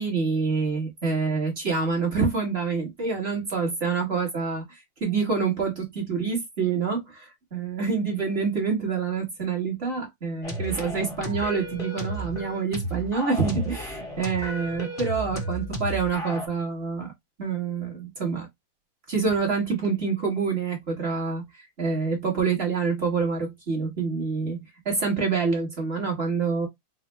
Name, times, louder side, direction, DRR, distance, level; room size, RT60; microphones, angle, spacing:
voice 1, 0.0-17.1 17.4-18.5 19.1-24.6 24.8-26.7, right 5 dB, 40° right, 1.0 m, -27 dB
sound 1, 10.4-16.5, equal, 35° left, 0.5 m, -33 dB
4.3 x 2.1 x 2.9 m
omnidirectional pair, 2.4 m